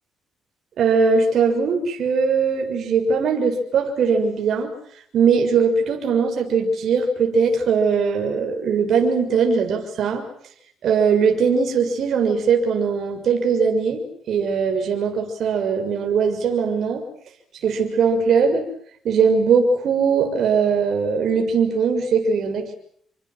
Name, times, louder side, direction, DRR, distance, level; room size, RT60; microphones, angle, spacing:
voice 1, 0.8-4.7 5.1-10.3 10.8-17.0 17.6-18.7 19.0-22.7, right 5 dB, 65° right, 3 dB, 6.8 m, -20 dB
29.5 x 24.5 x 7.8 m, 0.66 s
cardioid pair, 95°, 0 cm